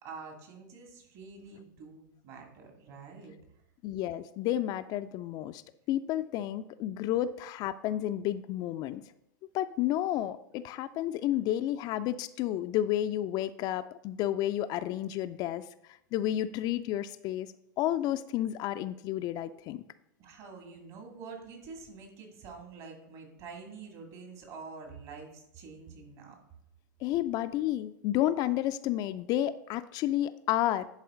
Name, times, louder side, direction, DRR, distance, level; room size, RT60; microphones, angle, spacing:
voice 1, 0.0-3.3 20.2-26.4, right 4 dB, 50° right, 2 dB, 2.4 m, -47 dB
voice 2, 3.8-5.6 5.9-9.0 9.5-15.6 16.1-19.8 27.0-30.9, left 12 dB, 40° left, 11 dB, 0.3 m, -31 dB
10.5 x 4.2 x 3.8 m, 0.80 s
hypercardioid pair, 90°, 11 cm